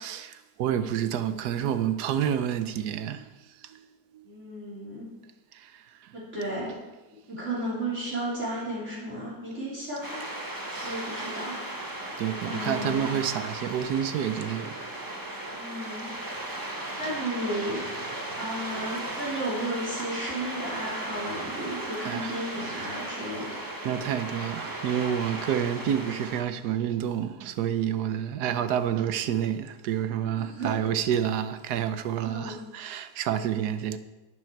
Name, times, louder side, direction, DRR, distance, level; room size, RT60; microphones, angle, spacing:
voice 1, 0.0-3.3 3.6-3.8 5.5-5.7 10.7-10.9 12.2-14.9 22.0-22.3 22.6-22.9 23.8-34.0, right 9 dB, 70° right, 1.2 m, -29 dB
voice 2, 4.2-5.1 6.1-6.8 7.1-10.3 10.8-11.6 12.4-13.1 15.5-16.1 17.0-17.8 18.4-23.6 30.4-30.8 32.2-32.6, right 1 dB, 40° right, 3.7 m, -34 dB
sound 1, 10.0-26.4, right 1 dB, 15° right, 1.0 m, -36 dB
11.0 x 9.8 x 4.6 m
omnidirectional pair, 1.9 m